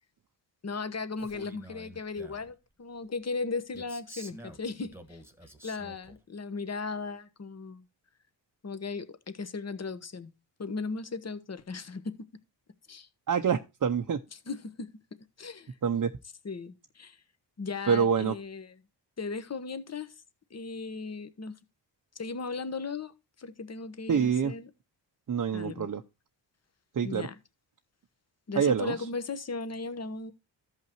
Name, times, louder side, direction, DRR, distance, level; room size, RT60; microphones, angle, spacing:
voice 1, 0.6-5.2 5.6-7.8 8.6-10.3 10.6-12.1 12.9-13.1 14.5-14.9 15.4-15.7 16.4-17.2 17.6-18.7 19.2-20.1 20.5-21.5 22.1-23.1 23.4-24.7 25.5-25.9 27.0-27.3 28.5-30.3, left 4 dB, 35° left, 1.1 m, -37 dB
Male speech man speaking, 1.2-2.5 3.7-6.2, right 1 dB, 5° right, 1.5 m, -49 dB
voice 2, 13.3-14.2 15.8-16.1 17.9-18.4 24.1-24.5 25.3-26.0 26.9-27.3 28.6-29.1, right 7 dB, 45° right, 0.7 m, -26 dB
14.5 x 5.6 x 3.0 m
cardioid pair, 85°, 44 cm